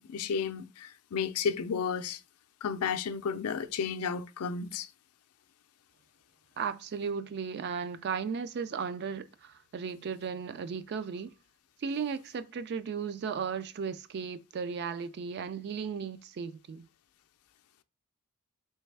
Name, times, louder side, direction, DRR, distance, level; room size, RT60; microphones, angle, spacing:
voice 1, 0.0-2.2 2.6-4.9, left 6 dB, 85° left, 0.4 m, -32 dB
voice 2, 6.6-11.3 11.8-16.9, right 6 dB, 50° right, 0.3 m, -35 dB
3.3 x 3.1 x 3.3 m
head